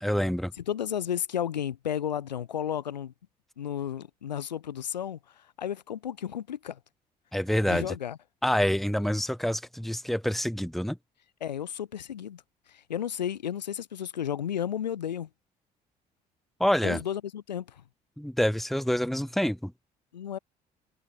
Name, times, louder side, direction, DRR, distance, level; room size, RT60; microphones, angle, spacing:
voice 1, 0.0-0.5 7.3-7.9 8.4-11.0 16.6-17.0 18.2-19.7, equal, ahead, 2.1 m, -27 dB
voice 2, 0.6-3.1 3.6-6.8 7.6-8.2 11.4-12.4 12.7-15.3 16.8-17.8 20.1-20.4, left 9 dB, 85° left, 5.9 m, -33 dB
hypercardioid pair, 50°, 21 cm